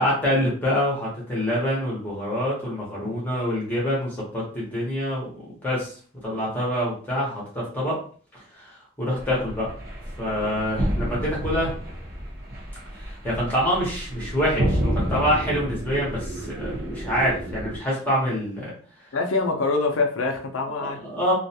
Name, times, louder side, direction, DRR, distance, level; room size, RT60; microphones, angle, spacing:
voice 1, 0.0-5.3 5.6-5.9 6.2-8.0 8.6-9.7 10.2-11.7 12.9-18.7 20.8-21.3, equal, 10° left, -6 dB, 0.9 m, -26 dB
sound 1, 9.2-17.8, equal, 45° right, 0.8 m, -30 dB
voice 2, 19.1-21.0, left 3 dB, 75° left, 3 dB, 0.5 m, -25 dB
2.4 x 2.3 x 2.7 m, 0.43 s
head